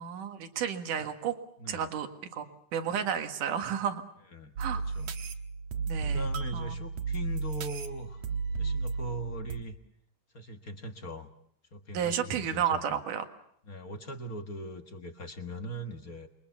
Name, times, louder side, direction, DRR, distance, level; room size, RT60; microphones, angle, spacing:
voice 1, 0.0-1.3 1.7-2.1 2.3-2.5 2.7-4.0 4.6-4.8 5.9-6.7 11.9-13.3, right 8 dB, 75° right, 7 dB, 3.3 m, -32 dB
voice 2, 1.6-1.9 4.3-5.1 6.0-9.7 10.3-11.3 11.7-13.0 13.6-16.3, equal, 40° left, 6 dB, 1.3 m, -41 dB
sound 1, 4.6-9.6, right 4 dB, 55° right, 2.2 m, -33 dB
28.0 x 23.0 x 7.1 m, 0.66 s
omnidirectional pair, 3.7 m